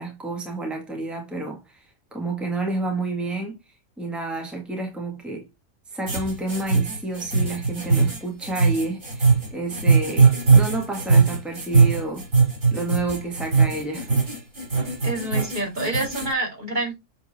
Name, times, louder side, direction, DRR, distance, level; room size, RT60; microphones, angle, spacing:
voice 1, 0.0-1.8 2.1-3.6 4.0-5.5 5.9-12.3 12.7-14.1, right 2 dB, ahead, 1.9 m, -30 dB
sound 1, 6.1-16.3, right 4 dB, 85° right, 4.5 m, -20 dB
voice 2, 15.0-16.9, right 2 dB, 35° right, 2.9 m, -27 dB
8.2 x 4.6 x 4.2 m
omnidirectional pair, 1.3 m